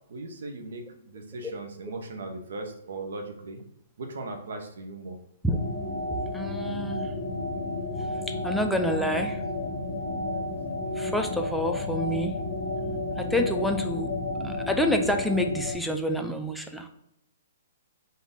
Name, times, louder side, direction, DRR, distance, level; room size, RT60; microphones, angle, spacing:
voice 1, 0.1-3.6 4.0-5.2 7.3-7.5 9.4-9.5, right 2 dB, 70° right, 5 dB, 0.8 m, -38 dB
sound 1, 5.5-15.7, left 2 dB, 25° left, 0.7 m, -32 dB
voice 2, 6.3-7.1 8.0-9.4 11.0-12.3 13.2-14.1 14.4-16.9, equal, ahead, 4 dB, 0.3 m, -28 dB
3.8 x 2.7 x 3.5 m, 0.76 s
hypercardioid pair, 165°, 0 cm